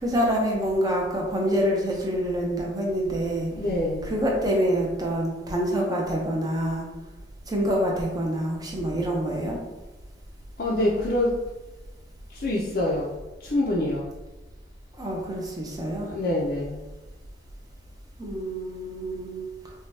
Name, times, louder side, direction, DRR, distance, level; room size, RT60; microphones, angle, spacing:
voice 1, 0.0-3.5 4.0-6.9 7.5-9.6 15.0-16.1 18.2-19.5, equal, 20° right, -1 dB, 0.6 m, -26 dB
voice 2, 3.5-4.1 10.6-11.3 12.3-13.1 13.4-14.1 15.9-16.8, left 1 dB, 55° left, -5 dB, 0.5 m, -25 dB
4.9 x 2.2 x 2.7 m, 1.1 s
head